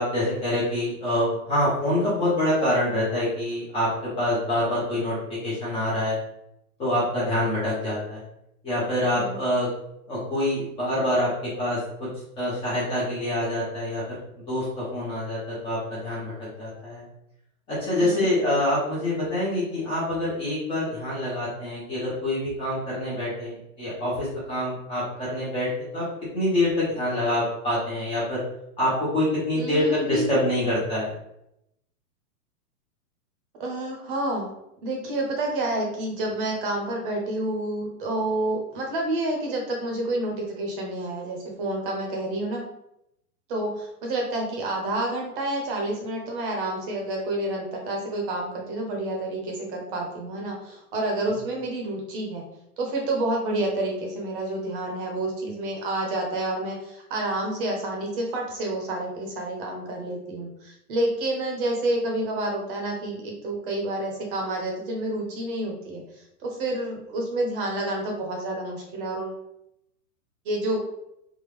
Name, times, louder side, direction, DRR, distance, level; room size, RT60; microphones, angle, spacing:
voice 1, 0.0-3.9 4.2-6.1 6.8-8.2 8.6-9.7 10.1-11.3 11.6-11.8 12.4-14.2 14.5-16.3 16.6-17.0 17.7-26.0 26.3-28.4 28.8-31.1, left 1 dB, 15° left, -7 dB, 0.6 m, -26 dB
voice 2, 18.0-18.3 29.5-30.4 33.6-34.5 34.8-42.6 43.5-52.4 52.8-69.4 70.4-70.8, right 1 dB, 35° right, 0 dB, 0.8 m, -29 dB
3.6 x 2.2 x 3.1 m, 0.80 s
hypercardioid pair, 150°, 46 cm